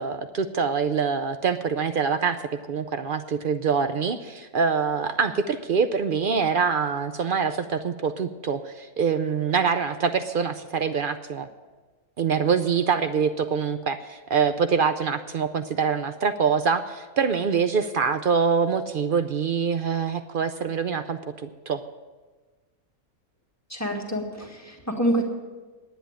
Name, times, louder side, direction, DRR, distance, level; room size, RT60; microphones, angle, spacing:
voice 1, 0.0-2.4 2.7-11.5 12.2-21.8, right 6 dB, 65° right, 10 dB, 0.5 m, -25 dB
voice 2, 23.7-25.2, right 1 dB, 10° left, 1 dB, 1.8 m, -27 dB
10.5 x 9.1 x 8.6 m, 1.3 s
omnidirectional pair, 1.5 m